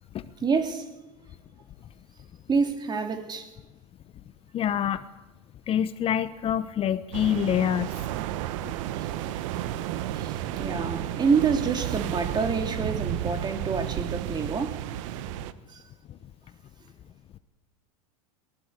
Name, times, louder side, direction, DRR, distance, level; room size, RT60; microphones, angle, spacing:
voice 1, 0.4-0.9 2.5-3.5 9.0-9.1 10.1-14.8 15.7-15.8, right 5 dB, 25° right, 3.3 m, -27 dB
voice 2, 4.5-5.0 5.7-7.9, left 10 dB, 35° left, 0.9 m, -26 dB
sound 1, 7.1-15.5, right 12 dB, 65° right, 1.4 m, -32 dB
22.5 x 19.5 x 8.4 m
hypercardioid pair, 100°, 17 cm